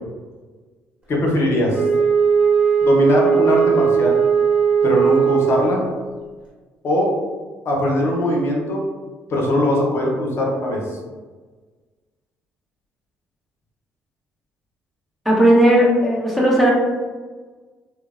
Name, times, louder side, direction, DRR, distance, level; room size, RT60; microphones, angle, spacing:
voice 1, 1.1-1.8 2.8-4.2 4.8-5.8 6.8-7.1 7.7-8.9 9.3-10.8, left 1 dB, 50° left, -1 dB, 0.7 m, -20 dB
Wind instrument woodwind instrument, 1.7-5.9, right 6 dB, 20° right, 1.2 m, -17 dB
voice 2, 15.2-16.7, right 1 dB, ahead, -4 dB, 0.8 m, -15 dB
2.9 x 2.1 x 2.4 m, 1.4 s
supercardioid pair, 75°, 6 cm